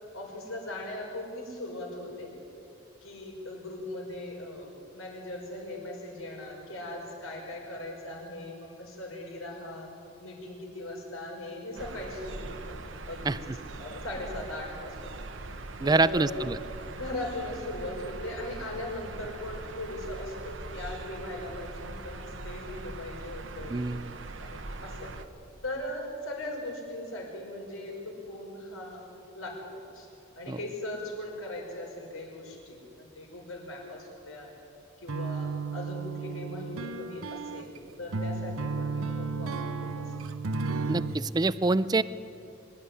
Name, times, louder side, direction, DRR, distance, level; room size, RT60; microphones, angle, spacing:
voice 1, 0.1-2.3 3.0-9.9 10.2-12.8 13.1-13.5 13.8-15.1 15.8-16.5 16.9-23.8 24.4-25.1 25.6-29.0 29.3-30.1 30.4-34.5 35.0-37.7 38.0-40.1, left 1 dB, 85° left, 0 dB, 5.3 m, -39 dB
sound 1, 11.7-25.3, right 2 dB, 65° right, 1.0 m, -41 dB
voice 2, 15.8-16.6 23.7-24.1 30.5-30.6 40.9-42.0, right 3 dB, 20° right, 17 dB, 0.4 m, -25 dB
sound 2, 35.1-41.2, right 4 dB, 85° right, 0.8 m, -33 dB
23.5 x 12.0 x 9.6 m, 2.6 s
head